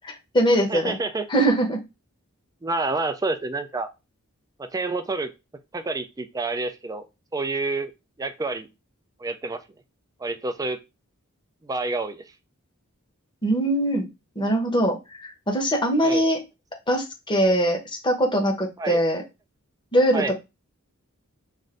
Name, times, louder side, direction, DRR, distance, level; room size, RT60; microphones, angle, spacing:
voice 1, 0.0-1.0 1.3-1.8 13.4-14.1 14.4-16.4 16.9-19.2 19.9-20.3, right 1 dB, 20° left, 2 dB, 0.9 m, -22 dB
voice 2, 0.6-1.3 2.6-3.9 4.6-5.3 5.7-7.1 7.3-7.9 8.2-8.7 9.2-9.6 10.2-10.8 11.6-12.2 16.0-16.2 18.8-19.0 20.1-20.3, right 3 dB, 15° right, 8 dB, 0.4 m, -28 dB
3.2 x 2.6 x 3.7 m, 0.25 s
head